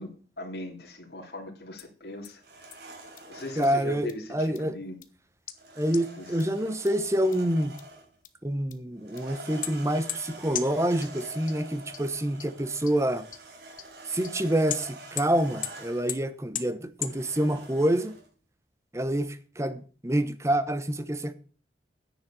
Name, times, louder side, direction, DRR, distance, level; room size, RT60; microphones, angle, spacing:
voice 1, 0.0-2.4 3.3-5.0 6.2-6.5, left 1 dB, 70° left, 3.0 m, -39 dB
sound 1, 1.8-1.9 2.2-2.3 2.7-2.8 3.2-3.3 3.6-3.7 4.1-4.2 4.6-4.7 5.0-5.1 5.5-5.6 5.9-6.0 6.4-6.5 6.9-7.0 7.3-7.4 7.8-7.9 8.2-8.3 8.7-8.8 9.2-9.3 9.6-9.7 10.1-10.2 10.5-10.6 11.0-11.1 11.5-11.6 11.9-12.0 12.4-12.5 12.9-13.0 13.3-13.4 13.8-13.9 14.2-14.3 14.7-14.8 15.2-15.3 15.6-15.7 16.1-16.2 16.5-16.6 17.0-17.1, left 11 dB, 50° left, 1.1 m, -33 dB
sound 2, 2.4-3.9 5.6-8.2 9.0-16.2 17.0-18.3, right 2 dB, 70° right, 4.0 m, -46 dB
voice 2, 3.6-4.8 5.8-7.7 8.4-13.2 14.1-18.1 18.9-21.3, right 1 dB, 15° right, 0.9 m, -27 dB
10.0 x 7.2 x 6.9 m
head